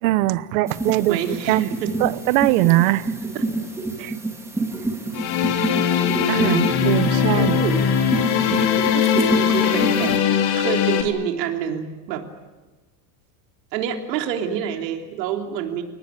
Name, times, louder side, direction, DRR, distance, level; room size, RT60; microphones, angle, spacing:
voice 1, 0.0-1.7 2.0-3.1 4.0-4.1 6.3-7.6, right 17 dB, 55° right, 16 dB, 1.1 m, -21 dB
sound 1, 0.7-10.2, right 2 dB, 5° right, 2.7 m, -28 dB
voice 2, 1.1-2.2 3.3-3.5 6.4-6.7 7.3-8.0 8.9-10.2 10.5-12.2 13.7-15.8, right 8 dB, 85° right, 4 dB, 3.6 m, -27 dB
sound 2, 5.1-11.0, left 8 dB, 50° left, 3.2 m, -20 dB
29.5 x 19.0 x 9.0 m, 1.2 s
supercardioid pair, 165°, 48 cm